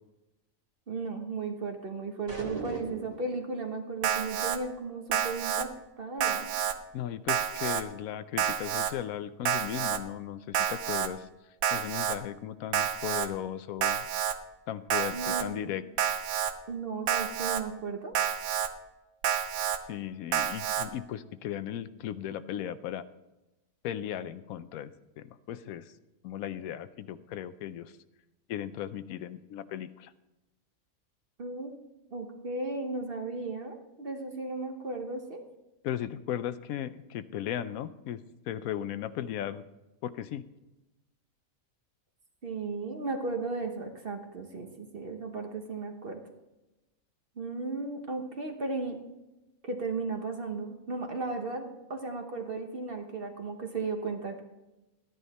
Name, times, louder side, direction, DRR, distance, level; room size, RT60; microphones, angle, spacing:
voice 1, 0.9-5.7 6.0-6.5 15.1-15.7 16.7-18.1 31.4-31.7 32.1-35.4 42.4-46.2 47.4-49.0 49.6-54.4, right 3 dB, 45° right, 4 dB, 1.1 m, -35 dB
sound 1, 2.3-3.3, right 3 dB, 25° right, 1.9 m, -37 dB
Alarm, 4.0-4.6 5.1-5.7 6.2-6.7 7.3-7.8 8.4-8.9 9.5-10.0 10.5-11.1 11.6-12.2 12.7-13.3 13.8-14.3 14.9-15.4 16.0-16.5 17.1-17.6 18.2-18.7 19.2-19.8 20.3-20.9, right 9 dB, 85° right, 1.2 m, -29 dB
voice 2, 6.9-11.3 11.7-14.1 14.7-16.1 19.9-23.0 23.8-24.9 25.2-25.9 26.2-27.9 28.5-30.1 35.8-39.6 40.0-40.4, left 11 dB, 85° left, 13 dB, 1.0 m, -36 dB
12.0 x 10.0 x 4.1 m, 1.0 s
omnidirectional pair, 1.4 m